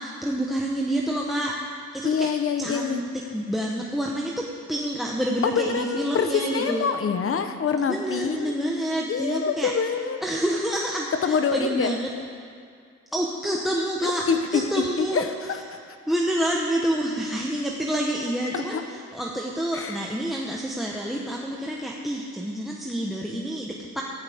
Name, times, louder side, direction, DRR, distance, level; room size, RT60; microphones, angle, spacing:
voice 1, 0.0-2.3 2.6-3.0 3.3-6.8 7.9-9.7 10.2-12.1 13.1-14.2 14.5-15.2 16.1-24.0, right 1 dB, ahead, -1 dB, 1.2 m, -28 dB
voice 2, 2.0-3.0 5.4-8.5 9.1-10.2 11.2-11.9 14.0-15.6 15.9-16.0 18.7-18.8 19.7-20.0, left 6 dB, 45° left, 8 dB, 1.0 m, -26 dB
15.0 x 13.5 x 3.6 m, 2.2 s
cardioid pair, 90°, 30 cm